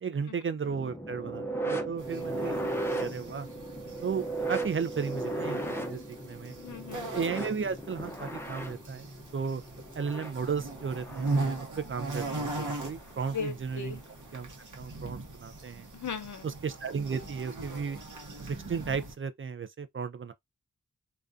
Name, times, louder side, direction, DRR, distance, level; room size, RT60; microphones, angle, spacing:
voice 1, 0.0-3.5 4.0-5.6 5.9-6.6 7.1-9.6 9.9-14.0 14.3-14.5 14.8-15.9 16.4-18.0 18.4-20.3, right 6 dB, 40° right, 0.4 m, -34 dB
sound 1, 0.6-11.6 12.9-13.1 14.1-14.2, right 2 dB, 5° left, 0.6 m, -36 dB
sound 2, 2.0-19.1, right 2 dB, 70° right, 0.9 m, -39 dB
voice 2, 6.6-7.1 13.3-14.0 15.9-16.4, left 6 dB, 65° left, 0.7 m, -37 dB
2.3 x 2.2 x 2.5 m
cardioid pair, 45°, 32 cm